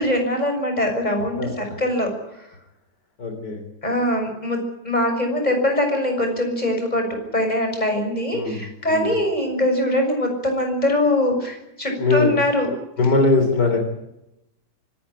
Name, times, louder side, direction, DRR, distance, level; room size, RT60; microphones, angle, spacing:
voice 1, 0.0-2.5 3.8-12.7, left 1 dB, 20° left, 4 dB, 6.6 m, -22 dB
voice 2, 3.2-3.6 8.3-8.6 8.9-9.1 12.0-12.3 13.0-13.8, left 3 dB, 60° left, 4 dB, 4.0 m, -20 dB
26.0 x 14.5 x 9.9 m, 0.87 s
omnidirectional pair, 2.0 m